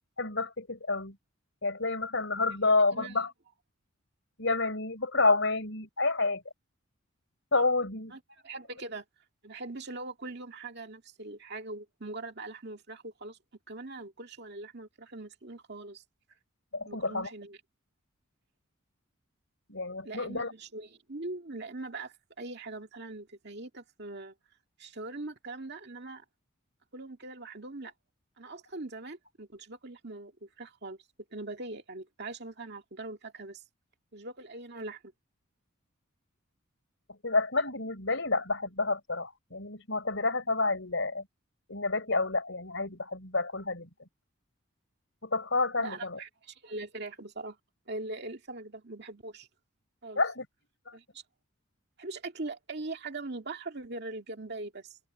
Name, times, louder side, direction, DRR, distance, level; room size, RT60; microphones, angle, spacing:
voice 1, 0.2-1.2 1.6-3.3 4.4-6.4 7.5-8.1 16.7-17.3 19.7-20.5 37.2-41.3 41.7-43.9 45.2-46.2 50.2-50.5 50.9-51.0, left 3 dB, 60° left, 5.6 m, -29 dB
voice 2, 8.1-9.0 9.4-13.4 13.7-16.0 16.9-17.6 20.0-24.3 24.8-26.2 26.9-27.9 28.4-31.0 31.3-33.6 34.1-35.0 45.8-47.6 47.9-49.5 50.0-50.2 50.9-51.2 52.0-55.0, right 2 dB, 50° right, 2.2 m, -41 dB
head